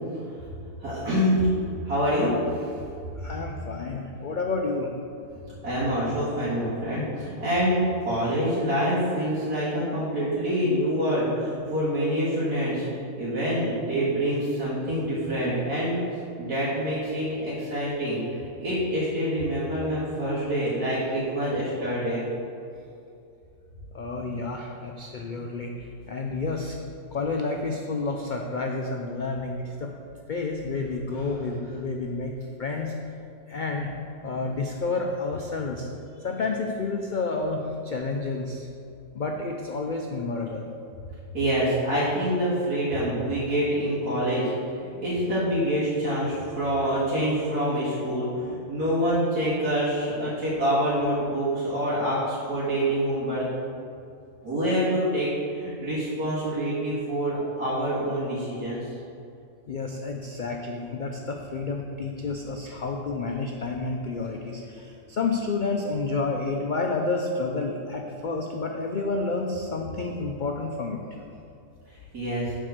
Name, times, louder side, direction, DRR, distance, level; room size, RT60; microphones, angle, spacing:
voice 1, 0.8-1.4 1.8-2.7 5.6-7.8 8.0-12.8 13.2-16.0 16.4-18.2 18.6-22.2 31.1-31.4 41.3-44.5 44.8-53.5 54.4-58.9 72.1-72.5, equal, 85° right, -12 dB, 2.7 m, -26 dB
voice 2, 3.2-4.9 23.9-25.7 26.1-26.8 27.1-29.9 30.3-32.3 32.6-32.9 33.5-33.9 34.2-35.9 36.2-38.7 39.1-40.6 59.7-71.0, left 3 dB, 85° left, 2 dB, 0.4 m, -30 dB
7.6 x 4.6 x 6.5 m, 2.6 s
omnidirectional pair, 1.6 m